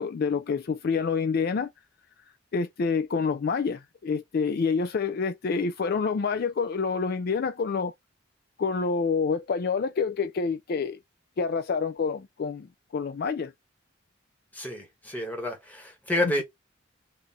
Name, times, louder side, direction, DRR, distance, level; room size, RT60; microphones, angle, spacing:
voice 1, 0.0-1.7 2.5-7.9 8.6-11.0 11.4-12.7 12.9-13.5, left 5 dB, 50° left, 0.3 m, -27 dB
voice 2, 14.5-16.4, left 1 dB, 10° left, 1.1 m, -29 dB
3.6 x 2.6 x 4.0 m
head